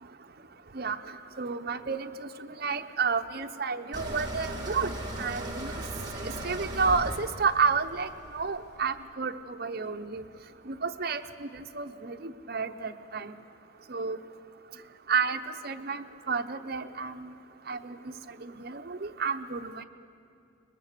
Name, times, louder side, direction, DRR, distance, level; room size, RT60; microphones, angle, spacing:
voice 1, 0.7-4.9 5.2-5.7 6.2-10.2 10.7-13.4 13.9-14.2 15.1-17.3 17.7-18.1 18.4-19.8, right 5 dB, 50° right, 6 dB, 0.8 m, -31 dB
sound 1, 3.9-8.9, right 1 dB, 20° right, 1.9 m, -37 dB
22.5 x 21.0 x 6.7 m, 2.6 s
head